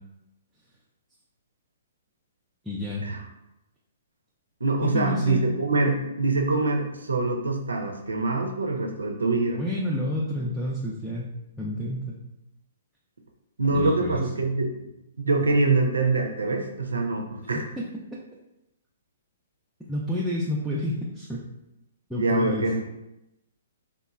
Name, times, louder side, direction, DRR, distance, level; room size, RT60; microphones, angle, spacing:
voice 1, 2.6-3.1 4.8-5.4 9.6-11.3 11.6-12.1 13.7-14.2 19.9-21.4 22.1-22.7, left 1 dB, ahead, -7 dB, 0.4 m, -29 dB
voice 2, 4.6-9.6 13.6-14.7 15.2-17.7 22.2-22.8, right 3 dB, 85° right, 3 dB, 0.4 m, -24 dB
3.0 x 2.1 x 2.3 m, 0.91 s
hypercardioid pair, 130°, 0 cm